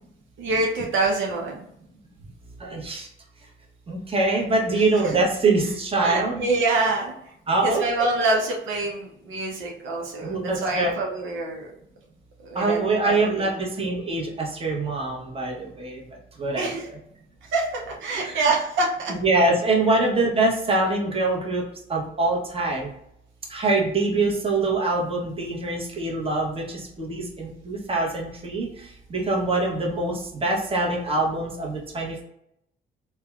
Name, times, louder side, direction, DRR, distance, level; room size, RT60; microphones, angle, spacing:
voice 1, 0.4-1.7 5.0-5.1 6.0-7.3 7.6-11.7 12.4-13.5 16.5-16.9 17.4-19.1 24.1-24.3, right 2 dB, 75° right, -1 dB, 0.6 m, -26 dB
voice 2, 2.6-3.1 3.9-6.4 7.5-8.4 10.2-11.0 12.5-16.0 16.4-17.0 18.2-18.5 19.1-21.6 21.9-22.9 23.5-28.7 29.1-32.2, right 2 dB, 30° right, -2 dB, 0.9 m, -24 dB
3.3 x 2.1 x 2.3 m, 0.76 s
cardioid pair, 90°, 20 cm